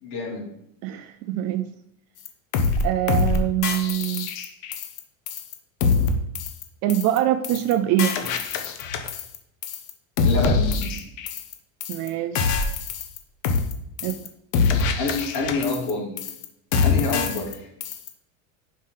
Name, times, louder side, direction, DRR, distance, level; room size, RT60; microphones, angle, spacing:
voice 1, 0.0-0.5 10.2-10.9 15.0-16.1 16.8-17.7, left 3 dB, 45° left, -1 dB, 2.8 m, -27 dB
voice 2, 0.8-1.7 2.8-4.3 6.8-8.2 11.9-12.6 14.0-14.2, right 12 dB, 40° right, 10 dB, 0.4 m, -24 dB
sound 1, 2.3-2.4 2.5-2.8 3.1-3.4 3.6-5.0 5.3-5.5 5.8-6.1 6.4-6.6 6.9-7.2 7.4-7.7 8.0-9.4 9.6-9.9 10.2-11.5 11.8-12.1 12.4-13.2 13.4-13.7 14.0-14.3 14.5-15.9 16.2-16.5 16.7-17.5 17.8-18.1, left 5 dB, 75° left, 1.2 m, -24 dB
5.5 x 5.3 x 5.6 m, 0.74 s
supercardioid pair, 145°, 39 cm